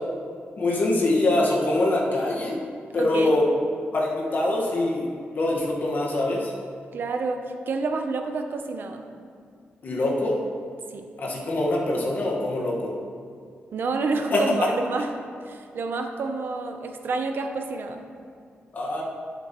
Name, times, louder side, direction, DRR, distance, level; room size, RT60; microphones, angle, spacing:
voice 1, 0.6-2.6 2.9-3.4 3.9-5.1 5.3-6.5 9.8-10.5 11.2-12.9 14.3-14.4 18.7-19.0, left 2 dB, 50° left, -3 dB, 1.5 m, -24 dB
voice 2, 3.0-3.4 6.9-9.0 10.9-11.1 13.7-15.1 15.4-18.0, right 3 dB, 60° right, 5 dB, 0.7 m, -29 dB
11.5 x 6.9 x 3.1 m, 2.2 s
wide cardioid pair, 135°, 4 cm